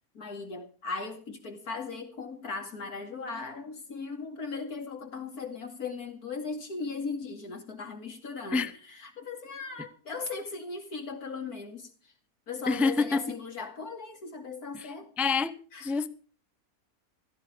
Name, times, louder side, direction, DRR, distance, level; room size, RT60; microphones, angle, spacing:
voice 1, 0.1-12.1 12.5-15.1 15.7-15.9, left 4 dB, 90° left, 3.0 m, -38 dB
voice 2, 12.7-13.2 14.7-14.9 15.2-15.5 15.8-16.1, left 4 dB, ahead, 0.4 m, -26 dB
16.5 x 13.5 x 5.1 m
omnidirectional pair, 1.6 m